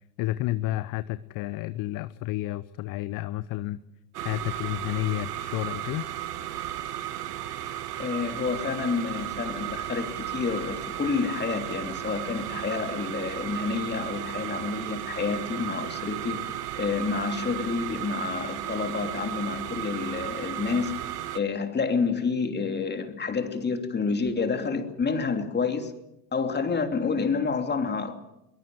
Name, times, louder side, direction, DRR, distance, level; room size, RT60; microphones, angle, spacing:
voice 1, 0.2-3.8 4.2-6.1, left 16 dB, 40° left, 14 dB, 1.0 m, -31 dB
sound 1, 4.1-21.4, right 12 dB, 70° right, 1.6 m, -35 dB
voice 2, 8.0-21.0 21.3-25.9 26.3-28.2, left 5 dB, 20° left, 6 dB, 3.0 m, -29 dB
23.0 x 21.5 x 7.8 m, 0.89 s
hypercardioid pair, 80°, 48 cm